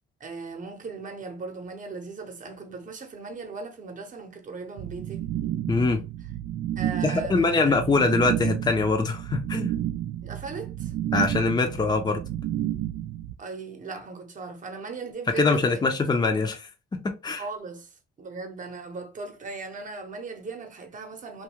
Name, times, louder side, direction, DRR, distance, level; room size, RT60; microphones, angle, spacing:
voice 1, 0.2-5.3 6.8-8.0 10.2-10.9 13.4-16.1 17.4-21.4, right 4 dB, 40° right, 0.9 m, -38 dB
sound 1, 4.8-13.3, right 12 dB, 70° right, 0.4 m, -31 dB
voice 2, 5.7-6.0 7.0-9.7 11.1-12.2 15.3-17.4, left 3 dB, 20° left, 0.6 m, -23 dB
2.6 x 2.4 x 2.9 m
cardioid pair, 90°, 20 cm